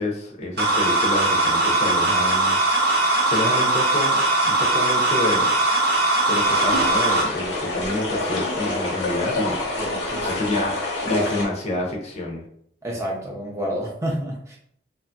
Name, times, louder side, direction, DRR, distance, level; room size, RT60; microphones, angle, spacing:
voice 1, 0.0-2.6 3.2-5.5 6.3-9.6 10.2-12.4, left 2 dB, 35° left, -1 dB, 0.5 m, -28 dB
sound 1, 0.6-7.2, right 2 dB, 55° right, 0.7 m, -20 dB
sound 2, 6.4-11.5, left 2 dB, 85° left, 1.0 m, -27 dB
voice 2, 9.8-10.4 12.8-14.6, equal, 15° right, -2 dB, 0.4 m, -29 dB
2.9 x 2.5 x 2.2 m, 0.68 s
head